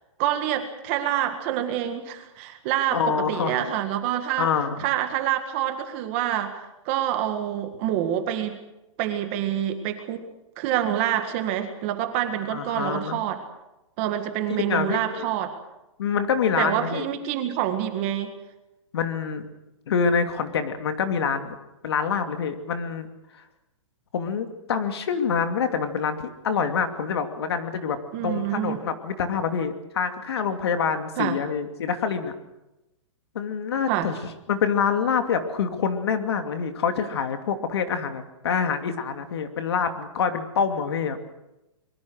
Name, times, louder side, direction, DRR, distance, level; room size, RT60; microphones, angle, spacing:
voice 1, 0.2-4.5 4.8-6.6 6.8-8.6 9.0-10.3 10.6-13.4 14.0-15.5 16.6-18.3 28.1-28.8 31.2-31.4 33.9-34.1, right 11 dB, 25° right, 7 dB, 1.8 m, -27 dB
voice 2, 2.9-3.6 4.4-4.8 12.5-13.2 14.6-15.3 16.0-17.1 18.9-19.5 19.9-21.6 21.8-23.1 24.1-28.0 28.2-32.3 33.3-34.2 34.5-41.2, left 6 dB, 50° left, 7 dB, 2.7 m, -26 dB
24.5 x 22.5 x 6.5 m, 0.94 s
hypercardioid pair, 180°, 16 cm